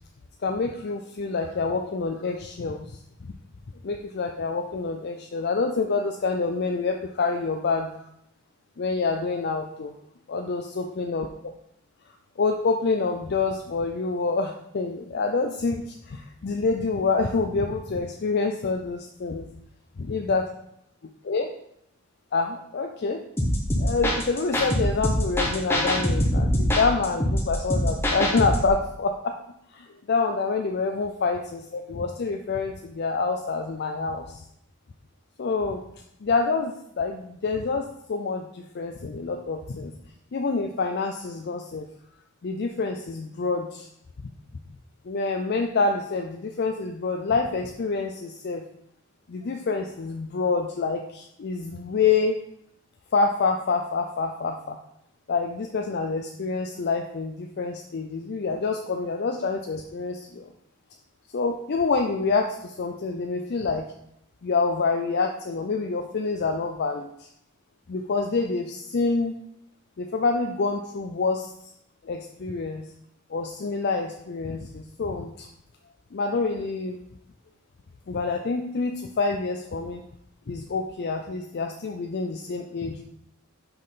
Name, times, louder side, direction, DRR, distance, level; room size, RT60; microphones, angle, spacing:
voice 1, 0.4-3.3 3.8-8.1 8.8-9.9 10.3-11.3 12.4-19.5 20.0-20.5 21.2-21.5 22.3-23.2 23.8-29.3 29.7-34.4 35.4-35.8 36.2-39.9 40.3-41.9 42.4-43.9 45.0-48.6 49.3-52.4 53.1-54.8 55.3-60.5 61.3-63.9 64.4-67.3 67.9-69.3 70.0-71.7 72.0-72.9 73.3-75.5 76.1-77.0 78.1-80.0 80.5-83.0, left 4 dB, 50° left, 4 dB, 0.4 m, -27 dB
sound 1, 23.4-28.7, equal, 10° left, 1.0 m, -24 dB
5.7 x 5.2 x 4.1 m, 0.75 s
head